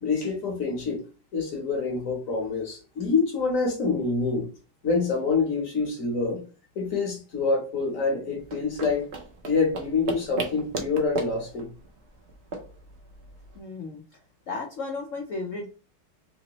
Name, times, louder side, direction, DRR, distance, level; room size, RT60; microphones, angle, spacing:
voice 1, 0.0-1.0 1.3-4.5 4.8-6.4 6.7-9.1 9.4-11.7, left 4 dB, 50° left, 1.2 m, -26 dB
sound 1, 8.4-13.6, right 3 dB, 75° right, 0.6 m, -35 dB
voice 2, 13.5-14.0 14.5-15.7, left 3 dB, 85° left, 0.7 m, -34 dB
3.7 x 2.9 x 2.9 m
omnidirectional pair, 2.2 m